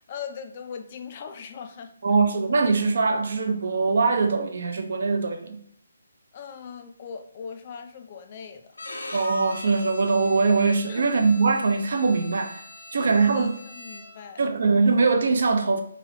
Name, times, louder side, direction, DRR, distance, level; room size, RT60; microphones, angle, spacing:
voice 1, 0.1-1.9 6.3-8.7 10.9-11.2 13.0-14.5, left 6 dB, 35° left, 0.3 m, -40 dB
voice 2, 2.0-5.6 9.1-12.6 12.9-13.5 14.4-15.8, right 4 dB, 60° right, 0.5 m, -22 dB
Bowed string instrument, 8.7-14.3, left 2 dB, 85° left, 0.7 m, -41 dB
3.1 x 2.9 x 2.7 m
figure-of-eight pair, 155°, 0 cm